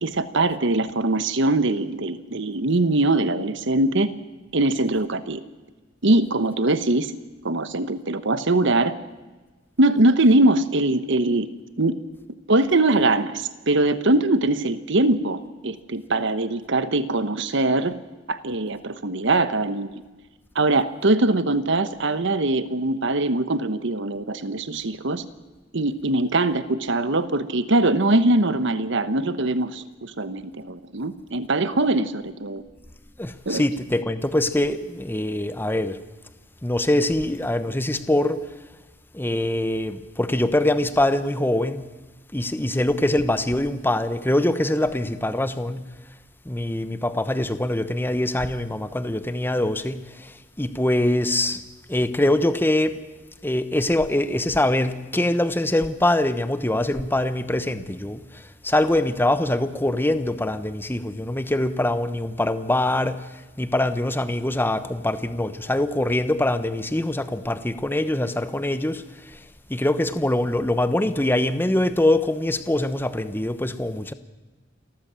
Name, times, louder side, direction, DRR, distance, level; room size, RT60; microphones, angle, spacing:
voice 1, 0.0-4.1 4.5-5.4 6.0-7.1 7.4-8.9 9.8-11.5 11.8-12.0 12.5-17.9 18.3-20.0 20.5-25.2 25.7-32.6 33.5-33.6, right 2 dB, 65° right, 1.2 m, -22 dB
voice 2, 33.2-36.0 36.6-38.4 39.1-41.8 42.3-45.9 46.5-50.3 50.6-51.6 51.9-53.0 53.4-58.2 58.6-63.2 63.6-69.0 69.7-74.1, left 1 dB, 10° left, 1.0 m, -23 dB
28.5 x 14.0 x 7.6 m
head